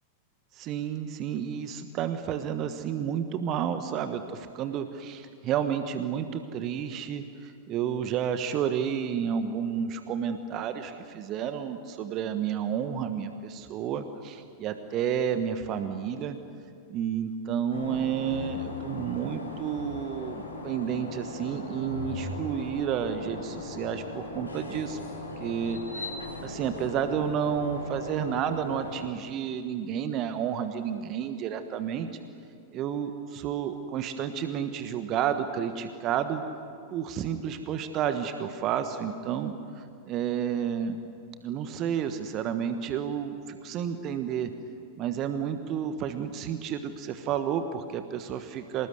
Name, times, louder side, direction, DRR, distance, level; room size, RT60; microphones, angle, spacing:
voice 1, 0.5-16.4 16.9-25.0 25.4-26.1 26.4-32.1 32.7-36.4 36.9-41.0 41.4-44.5 44.9-48.9, right 8 dB, 35° right, 9 dB, 1.3 m, -31 dB
sound 1, 17.7-29.1, left 2 dB, 80° left, 3.8 m, -38 dB
26.0 x 19.5 x 9.6 m, 2.4 s
figure-of-eight pair, 90°, 0 cm